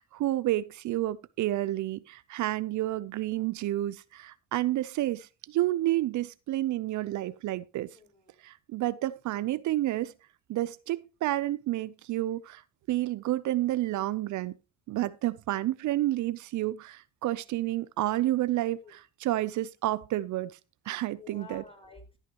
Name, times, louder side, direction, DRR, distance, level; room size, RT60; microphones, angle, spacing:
voice 1, 0.0-7.9 8.4-10.1 10.5-12.6 12.9-14.5 14.9-20.5 20.9-21.6, right 15 dB, 70° right, 0.6 m, -30 dB
voice 2, 7.9-8.4 18.8-18.9 21.1-22.2, left 4 dB, 20° left, 5.0 m, -51 dB
14.0 x 9.1 x 2.9 m
cardioid pair, 90°, 30 cm